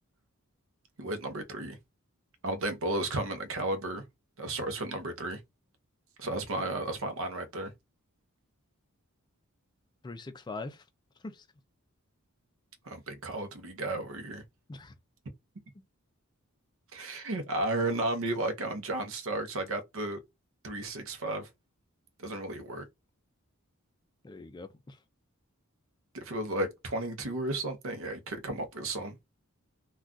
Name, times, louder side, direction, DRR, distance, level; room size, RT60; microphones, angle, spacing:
voice 1, 1.0-1.8 2.4-4.0 4.4-5.4 6.2-7.7 12.8-14.4 16.9-20.2 20.6-21.5 22.2-22.9 26.1-29.1, right 2 dB, 65° right, 0.7 m, -33 dB
voice 2, 10.0-10.8 11.2-11.5 14.7-14.9 24.2-25.0, left 3 dB, 20° left, 0.3 m, -42 dB
2.3 x 2.3 x 3.7 m
head